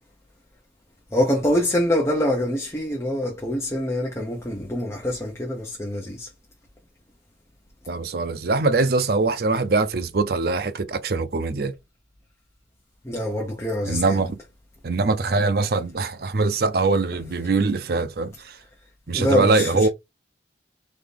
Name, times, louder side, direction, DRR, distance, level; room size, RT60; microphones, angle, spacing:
voice 1, 1.1-6.3 13.0-14.2 19.1-19.9, left 1 dB, 15° left, 0.9 m, -25 dB
voice 2, 7.9-11.7 13.8-14.4 14.8-18.6 19.1-19.9, right 3 dB, 55° right, 0.6 m, -22 dB
4.0 x 2.9 x 3.4 m
head